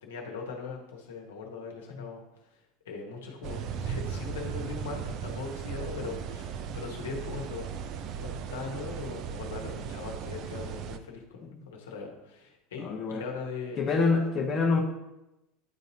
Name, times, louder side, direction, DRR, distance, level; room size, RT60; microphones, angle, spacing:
voice 1, 0.0-2.2 2.9-13.8, left 4 dB, 70° left, 1 dB, 1.1 m, -40 dB
sound 1, 3.4-11.0, right 7 dB, 50° right, 0.4 m, -37 dB
voice 2, 12.8-13.2 13.8-14.8, left 4 dB, 30° left, 1 dB, 0.8 m, -26 dB
9.3 x 4.0 x 2.7 m, 0.93 s
figure-of-eight pair, 75°, 0 cm